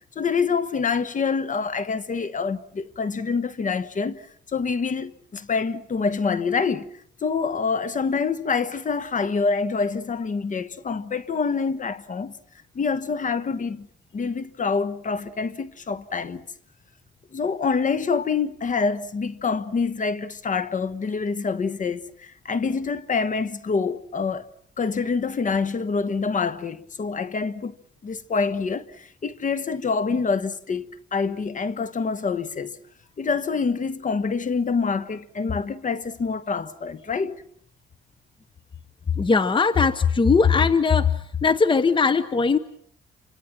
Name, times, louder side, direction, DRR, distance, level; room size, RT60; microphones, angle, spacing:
voice 1, 0.1-4.3 4.5-6.9 7.2-12.3 12.7-13.9 14.1-16.4 17.3-24.4 24.8-27.7 28.0-32.8 33.2-37.4, left 5 dB, 40° left, 1.2 m, -26 dB
voice 2, 39.2-41.1 41.4-42.6, left 5 dB, 25° left, 1.0 m, -19 dB
28.5 x 25.5 x 6.1 m
cardioid pair, 90°, 20 cm